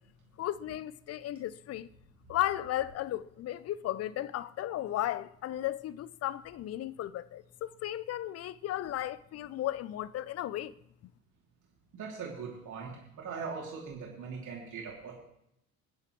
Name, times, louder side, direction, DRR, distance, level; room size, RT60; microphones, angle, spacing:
voice 1, 0.4-1.9 2.3-10.7, left 13 dB, 35° left, 0.5 m, -35 dB
voice 2, 11.9-15.2, right 5 dB, 45° right, 2.9 m, -40 dB
22.5 x 9.7 x 3.1 m
figure-of-eight pair, 60°, 43 cm